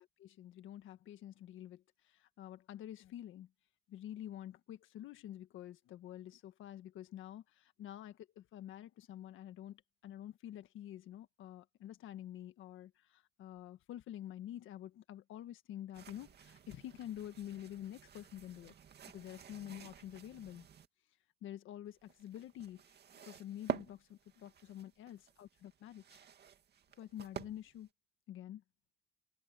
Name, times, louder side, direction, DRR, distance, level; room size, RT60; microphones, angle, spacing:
voice 1, 0.0-3.5 3.9-18.7 19.1-20.6 21.4-22.8 23.2-26.2 26.9-27.9 28.3-28.6, left 12 dB, 85° left, 1.7 m, -48 dB
sound 1, 15.9-20.9 21.9-27.9, right 8 dB, 55° right, 2.4 m, -49 dB
cardioid pair, 90°, 20 cm